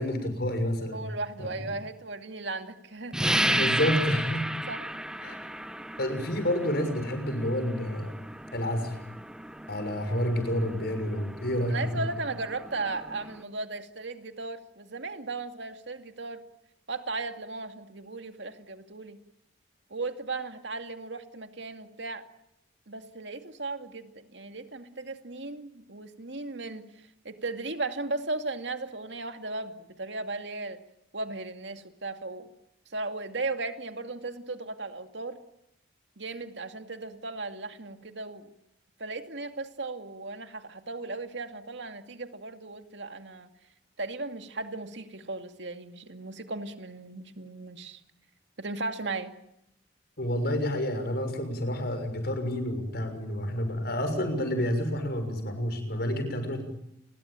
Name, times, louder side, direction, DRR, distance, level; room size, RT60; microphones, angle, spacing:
voice 1, 0.0-1.0 1.4-1.5 3.5-4.5 5.2-5.4 6.0-8.1 8.5-9.0 9.7-12.1 50.2-56.6, equal, 55° left, 8 dB, 6.4 m, -29 dB
voice 2, 0.9-3.2 4.7-4.8 11.7-16.4 16.9-19.2 19.9-22.2 22.9-26.9 27.2-30.8 31.1-32.5 32.9-35.4 36.2-38.5 39.0-43.5 44.0-48.0 48.6-49.3, right 3 dB, 65° right, 7 dB, 2.4 m, -36 dB
sound 1, 3.1-13.4, right 1 dB, 5° right, 1.5 m, -33 dB
29.5 x 22.0 x 9.1 m, 0.82 s
head